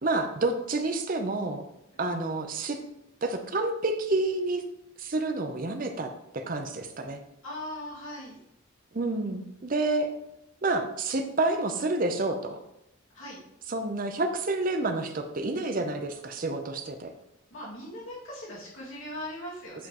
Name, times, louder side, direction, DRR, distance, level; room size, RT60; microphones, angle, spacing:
voice 1, 0.0-1.6 2.0-2.8 3.2-4.6 5.0-7.2 8.9-10.1 10.6-12.6 13.7-17.1, right 2 dB, 45° right, 6 dB, 0.6 m, -29 dB
voice 2, 7.4-8.4 13.1-13.4 17.5-19.9, left 1 dB, 80° left, -6 dB, 2.2 m, -39 dB
8.2 x 5.0 x 3.0 m, 0.84 s
head